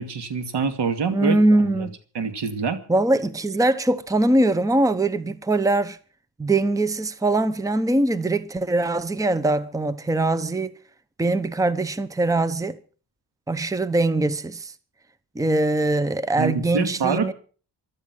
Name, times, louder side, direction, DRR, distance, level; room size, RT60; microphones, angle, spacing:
voice 1, 0.0-1.9 2.1-2.8 16.4-17.3, right 5 dB, 75° right, 2.5 m, -26 dB
voice 2, 1.1-1.9 2.9-6.0 6.4-10.7 11.2-12.8 13.5-14.7 15.3-17.3, right 2 dB, 10° right, 0.9 m, -22 dB
16.0 x 12.5 x 6.1 m
cardioid pair, 105°, 41 cm